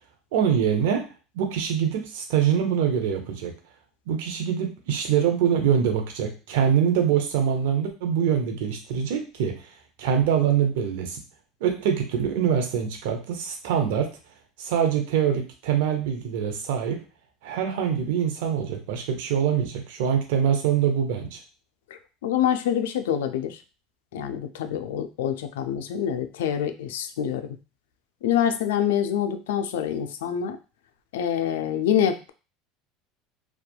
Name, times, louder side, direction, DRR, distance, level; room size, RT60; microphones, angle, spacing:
voice 1, 0.3-1.0 1.3-3.5 4.1-9.7 10.0-11.2 11.6-14.1 14.6-17.0 17.4-21.4, right 8 dB, 70° right, 4 dB, 0.6 m, -24 dB
voice 2, 22.2-23.6 24.1-27.4 28.2-30.6 31.1-32.3, left 9 dB, 75° left, 8 dB, 0.3 m, -26 dB
2.6 x 2.3 x 2.2 m, 0.33 s
hypercardioid pair, 80°, 0 cm